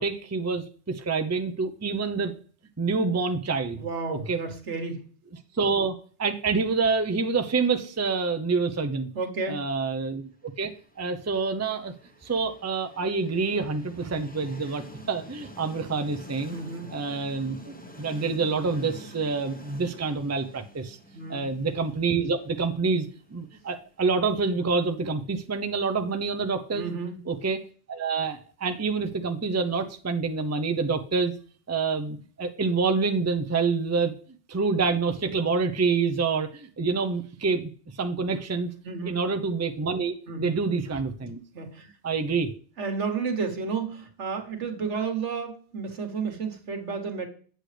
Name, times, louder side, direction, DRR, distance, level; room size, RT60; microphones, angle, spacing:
voice 1, 0.0-2.3 2.8-3.8 4.1-4.4 5.5-9.1 9.5-10.3 10.6-11.9 12.2-16.6 16.9-21.0 21.3-26.9 27.3-27.6 27.9-31.3 31.7-34.1 34.5-37.7 38.0-38.7 39.0-41.4 42.0-42.5, right 4 dB, 20° right, 7 dB, 0.5 m, -27 dB
voice 2, 3.7-5.0 9.1-9.6 16.5-17.0 21.1-21.4 26.7-27.2 38.8-39.2 40.3-40.5 41.5-41.9 42.8-47.3, right 5 dB, 85° right, 4 dB, 1.7 m, -32 dB
Train, 10.6-26.4, equal, 10° left, 1.0 m, -48 dB
8.2 x 7.8 x 3.3 m, 0.43 s
omnidirectional pair, 1.2 m